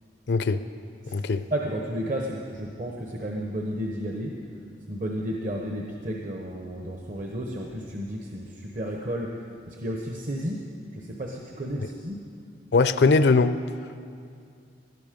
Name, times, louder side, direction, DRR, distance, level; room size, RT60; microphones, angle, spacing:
voice 1, 0.3-0.6 1.1-1.4 12.7-13.5, left 4 dB, 75° left, 12 dB, 0.5 m, -20 dB
voice 2, 1.5-4.4 4.9-10.7 10.9-12.2, equal, 50° right, 0 dB, 1.0 m, -32 dB
19.0 x 11.5 x 5.2 m, 2.3 s
head